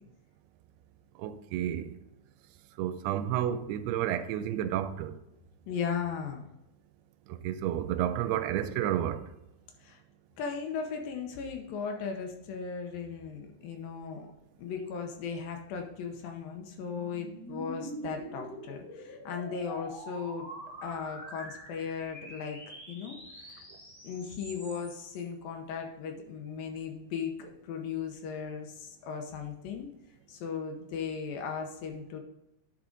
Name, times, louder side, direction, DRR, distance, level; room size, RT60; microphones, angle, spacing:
voice 1, 1.2-1.9 2.8-5.1 7.3-9.2, right 11 dB, 85° right, 2.6 m, -31 dB
voice 2, 5.7-6.5 9.8-10.0 10.4-14.3 14.6-20.5 20.8-22.6 22.9-23.6 24.0-29.9 30.3-32.2, left 6 dB, 75° left, 2.4 m, -37 dB
sound 1, 15.7-25.2, right 1 dB, 5° left, 1.5 m, -45 dB
11.5 x 4.8 x 3.9 m
omnidirectional pair, 4.6 m